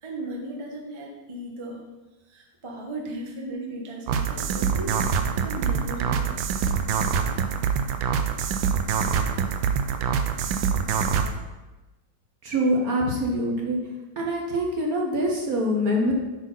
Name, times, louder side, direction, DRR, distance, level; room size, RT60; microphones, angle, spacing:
voice 1, 0.0-1.8 2.2-6.7, right 1 dB, 20° right, -1 dB, 0.8 m, -36 dB
sound 1, 4.1-11.3, right 6 dB, 80° right, 1.3 m, -25 dB
voice 2, 12.4-13.8 14.2-16.1, equal, 55° right, -1 dB, 1.3 m, -24 dB
8.3 x 4.2 x 5.4 m, 1.1 s
omnidirectional pair, 2.1 m